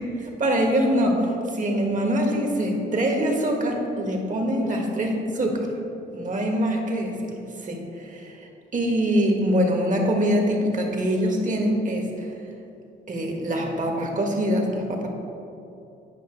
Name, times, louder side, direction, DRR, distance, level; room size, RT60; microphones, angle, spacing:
voice 1, 0.2-5.5 6.1-7.3 7.6-8.4 8.7-12.3 13.1-15.1, equal, 40° right, 1 dB, 1.4 m, -24 dB
9.5 x 5.3 x 3.8 m, 2.7 s
cardioid pair, 90°, 20 cm